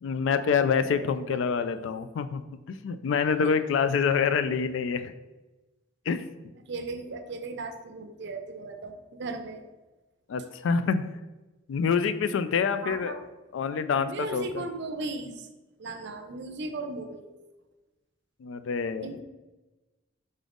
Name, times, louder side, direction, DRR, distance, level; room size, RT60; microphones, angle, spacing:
voice 1, 0.0-2.4 2.7-5.1 6.1-6.2 10.3-11.1 11.7-13.2 13.5-14.7 18.4-19.1, left 6 dB, 70° left, 12 dB, 0.3 m, -26 dB
voice 2, 6.7-9.6 12.8-13.2 14.0-15.5 15.8-17.4 19.0-19.2, right 3 dB, 65° right, 7 dB, 0.5 m, -37 dB
3.9 x 3.8 x 3.4 m, 1.1 s
head